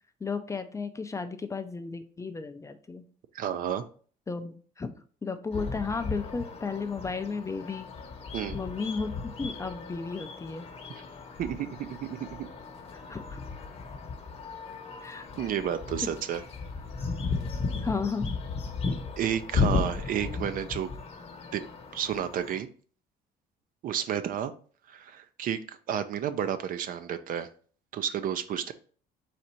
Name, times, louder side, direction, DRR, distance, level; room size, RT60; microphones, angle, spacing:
voice 1, 0.2-3.0 4.3-5.0 5.2-7.9 8.5-9.1 9.4-10.7 12.9-13.4 15.0-15.3 17.8-18.3, left 4 dB, 20° left, 8 dB, 0.4 m, -34 dB
voice 2, 3.3-3.8 8.3-8.6 11.4-12.5 15.4-16.4 19.2-20.9 21.5-21.6 21.9-22.7 23.8-24.5 24.9-27.5 27.9-28.7, right 9 dB, 55° right, 11 dB, 0.4 m, -31 dB
sound 1, 5.5-22.6, left 4 dB, 40° left, 0.8 m, -35 dB
4.2 x 2.5 x 4.2 m, 0.44 s
cardioid pair, 110°, 17 cm